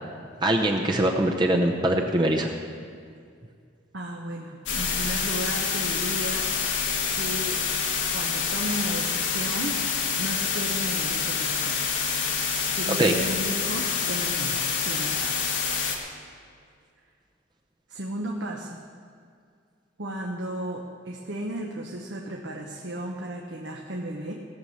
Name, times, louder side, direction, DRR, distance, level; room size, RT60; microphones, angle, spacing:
voice 1, 0.4-2.5 13.0-13.1, right 1 dB, 25° right, 2 dB, 0.7 m, -22 dB
voice 2, 3.9-6.5 7.1-7.6 8.1-9.8 10.2-12.0 12.4-15.5 17.9-18.8 20.0-24.3, right 1 dB, 70° right, 0 dB, 1.0 m, -34 dB
sound 1, 4.7-16.0, left 6 dB, 75° left, 1.6 m, -27 dB
17.5 x 7.0 x 6.4 m, 2.2 s
head